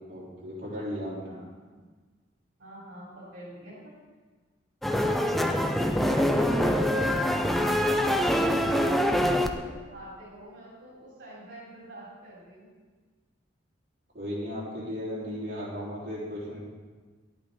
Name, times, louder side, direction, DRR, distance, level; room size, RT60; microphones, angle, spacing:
voice 1, 0.1-1.3 14.1-16.6, equal, 50° right, -8 dB, 3.7 m, -35 dB
voice 2, 1.1-1.8 2.6-4.0 5.5-8.2 8.8-12.7, right 1 dB, 65° right, -6 dB, 3.2 m, -45 dB
sound 1, 4.8-9.5, equal, ahead, 0.5 m, -24 dB
11.0 x 8.6 x 4.0 m, 1.4 s
head